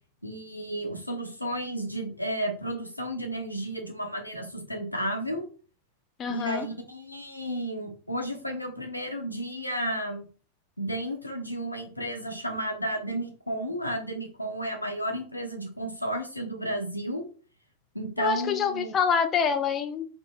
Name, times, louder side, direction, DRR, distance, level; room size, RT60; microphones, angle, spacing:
voice 1, 0.2-5.4 6.3-10.2 10.8-17.2 17.9-18.9, right 1 dB, 85° left, 3 dB, 0.8 m, -32 dB
voice 2, 6.2-6.7 18.2-20.1, left 6 dB, 25° left, 8 dB, 0.4 m, -26 dB
3.0 x 2.9 x 3.4 m, 0.39 s
figure-of-eight pair, 90°, 0 cm